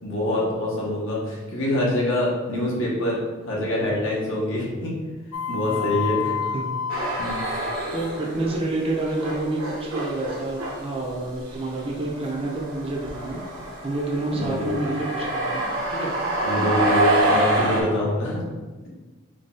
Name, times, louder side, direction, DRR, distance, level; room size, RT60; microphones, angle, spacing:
voice 1, 0.0-5.0 5.5-6.3 7.2-7.4 14.3-14.7 16.4-18.4, left 1 dB, 65° left, -4 dB, 1.0 m, -25 dB
sound 1, 5.3-7.9, left 7 dB, 85° left, 0.3 m, -29 dB
voice 2, 5.7-6.0 6.5-6.8 7.9-13.4 13.8-16.1, right 2 dB, 25° right, -2 dB, 0.5 m, -29 dB
sound 2, 6.9-8.6 8.8-17.8, right 1 dB, 75° right, 0.9 m, -27 dB
3.9 x 2.3 x 3.8 m, 1.3 s
head